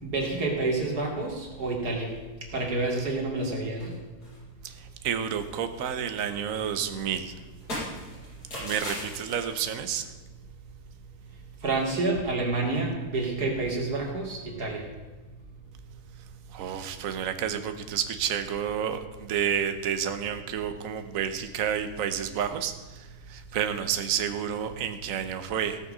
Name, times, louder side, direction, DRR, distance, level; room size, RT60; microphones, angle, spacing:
voice 1, 0.0-2.1 2.5-3.9 11.6-14.8, right 3 dB, 80° right, -1 dB, 2.9 m, -28 dB
sound 1, 1.2-1.7 2.1-2.2 2.5-2.6 2.9-3.5 3.8-5.2 5.5-9.9, left 1 dB, 80° left, 5.5 m, -40 dB
voice 2, 4.6-7.3 8.6-10.1 16.5-25.8, right 8 dB, 60° right, 8 dB, 1.2 m, -30 dB
17.0 x 6.4 x 6.1 m, 1.2 s
omnidirectional pair, 1.7 m